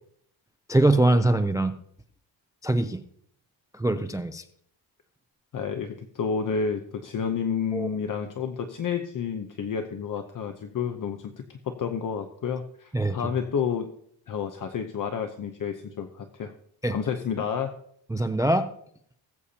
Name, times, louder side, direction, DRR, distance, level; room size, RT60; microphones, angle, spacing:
voice 1, 0.7-1.7 2.6-3.0 3.7-4.4 7.7-7.9 12.9-13.2 16.8-16.9 18.1-18.7, right 1 dB, 10° right, 9 dB, 0.3 m, -23 dB
voice 2, 5.5-13.9 14.3-16.5 16.9-17.7, left 6 dB, 45° left, 6 dB, 0.8 m, -30 dB
19.5 x 8.4 x 2.8 m, 0.67 s
wide cardioid pair, 160°, 46 cm